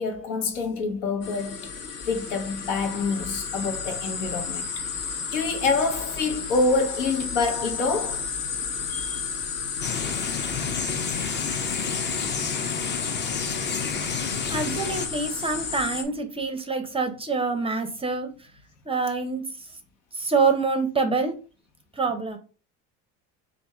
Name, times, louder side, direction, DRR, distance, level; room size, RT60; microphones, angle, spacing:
voice 1, 0.0-1.7 2.1-4.7 5.3-8.2 8.9-9.2, left 3 dB, 80° left, 1.2 m, -26 dB
sound 1, 1.2-16.0, left 6 dB, 55° left, 1.0 m, -32 dB
sound 2, 9.8-15.1, left 5 dB, 30° left, 0.6 m, -30 dB
voice 2, 14.5-18.3 18.9-19.4 20.1-21.3 22.0-22.4, right 4 dB, 15° right, 0.5 m, -26 dB
3.4 x 2.6 x 4.2 m
supercardioid pair, 110°, 36 cm